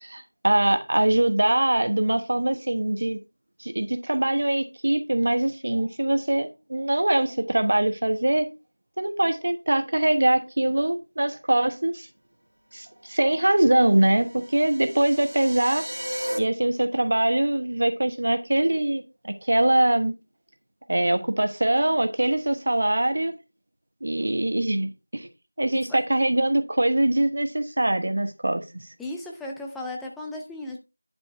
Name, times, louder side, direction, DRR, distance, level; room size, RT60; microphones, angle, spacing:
voice 1, 0.0-3.2 3.6-8.5 9.0-12.1 12.7-15.8 16.4-20.1 20.9-23.3 24.0-25.3 25.6-28.6, right 1 dB, 35° right, 1.1 m, -23 dB
sound 1, 13.8-16.4, equal, 75° right, 2.1 m, -35 dB
voice 2, 29.0-30.8, left 2 dB, ahead, 0.4 m, -35 dB
10.5 x 4.4 x 4.5 m
figure-of-eight pair, 175°, 0 cm